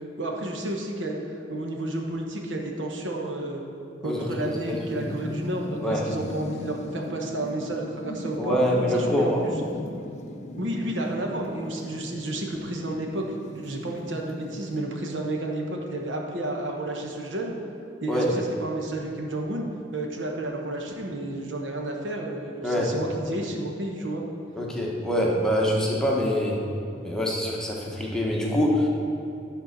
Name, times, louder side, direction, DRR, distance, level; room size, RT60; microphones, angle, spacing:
voice 1, 0.2-3.6 4.0-8.6 8.9-9.3 10.6-13.3 13.5-17.5 18.0-19.6 19.9-24.2, right 1 dB, 70° right, 1 dB, 1.1 m, -31 dB
voice 2, 4.0-5.1 5.8-6.0 8.4-9.4 18.1-18.3 22.6-22.9 24.6-26.6 27.0-28.9, equal, 5° left, -3 dB, 1.1 m, -25 dB
sound 1, 4.4-14.8, left 1 dB, 40° left, 0.6 m, -38 dB
11.0 x 4.5 x 6.6 m, 2.7 s
head